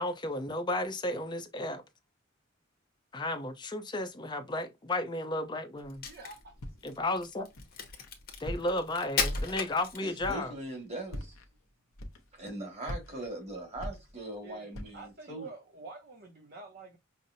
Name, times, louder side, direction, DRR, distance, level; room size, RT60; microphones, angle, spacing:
voice 1, 0.0-1.8 3.1-6.0 6.8-7.5 8.4-10.5, left 1 dB, 20° left, 0.5 m, -33 dB
Crack, 5.8-10.4, left 5 dB, 45° left, 0.9 m, -36 dB
voice 2, 6.0-6.5 14.4-17.0, right 3 dB, 50° right, 0.7 m, -48 dB
Walk footsteps, 6.6-7.0 7.6-8.1 8.4-8.9 9.3-9.8 10.2-10.5 11.0-11.5 12.0-12.5 12.8-14.4 14.7-15.1, equal, 85° left, 0.7 m, -41 dB
voice 3, 10.0-11.4 12.3-15.5, right 1 dB, 30° right, 1.7 m, -40 dB
5.5 x 2.0 x 2.6 m
head